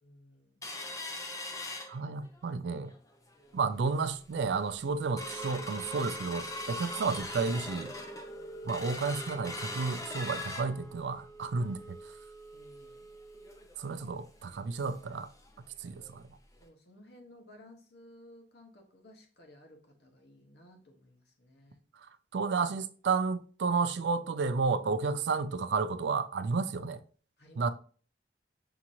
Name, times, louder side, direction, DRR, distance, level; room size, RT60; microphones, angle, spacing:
voice 1, 0.0-0.9 8.3-8.9 12.5-13.1 16.6-21.8 27.4-27.7, left 1 dB, 65° left, 1.1 m, -57 dB
sound 1, 0.6-2.5 2.9-3.0 3.3-3.7 4.2-4.3 4.6-15.1 15.5-15.6 15.9-16.1 16.6-16.7, left 1 dB, 20° left, 0.6 m, -41 dB
voice 2, 1.9-2.9 3.5-7.9 8.6-12.0 13.8-15.3 15.8-16.2 22.0-27.0 27.6-27.7, right 4 dB, 70° right, 0.4 m, -32 dB
5.8 x 2.9 x 2.5 m
head